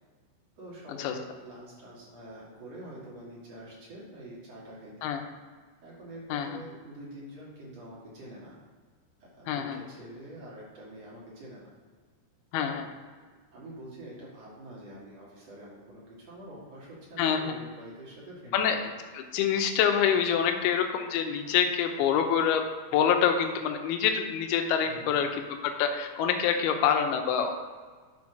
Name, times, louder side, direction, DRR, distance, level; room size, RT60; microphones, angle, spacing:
voice 1, 0.6-5.1 5.8-8.6 9.2-11.7 12.6-12.8 13.5-18.7 24.8-25.2, right 1 dB, 45° right, -6 dB, 2.7 m, -46 dB
voice 2, 6.3-6.6 9.5-9.8 12.5-12.9 17.2-17.5 18.5-18.8 19.1-27.5, left 8 dB, 80° left, 4 dB, 2.4 m, -26 dB
9.1 x 5.2 x 6.0 m, 1.5 s
omnidirectional pair, 5.3 m